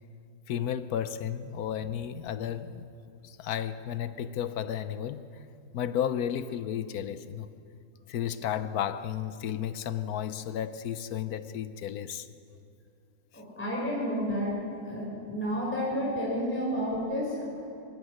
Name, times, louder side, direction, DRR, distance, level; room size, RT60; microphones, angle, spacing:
voice 1, 0.5-2.8 3.2-5.3 5.7-7.5 8.1-12.3, left 9 dB, 60° left, 1.0 m, -33 dB
voice 2, 13.3-14.5 14.8-17.5, equal, 5° left, 5.1 m, -31 dB
23.5 x 21.5 x 6.5 m
omnidirectional pair, 2.3 m